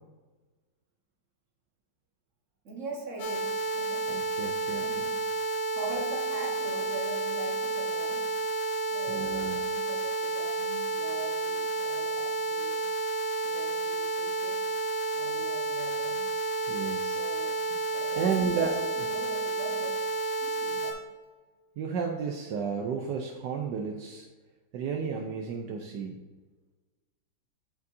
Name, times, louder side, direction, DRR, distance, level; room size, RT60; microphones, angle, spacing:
voice 1, 2.6-4.4 4.8-5.4 5.7-8.3 8.9-12.8 13.4-14.7 15.1-16.3 17.0-17.6 17.9-19.9 20.4-21.0, right 2 dB, 45° right, -2 dB, 1.8 m, -42 dB
sound 1, 3.2-20.9, right 2 dB, 85° left, 1.9 m, -31 dB
voice 2, 4.1-4.8 9.1-9.6 16.7-17.2 18.2-18.7 21.8-24.3 24.7-26.2, right 6 dB, 75° right, 2 dB, 1.3 m, -32 dB
12.0 x 5.1 x 2.7 m, 1.3 s
omnidirectional pair, 1.9 m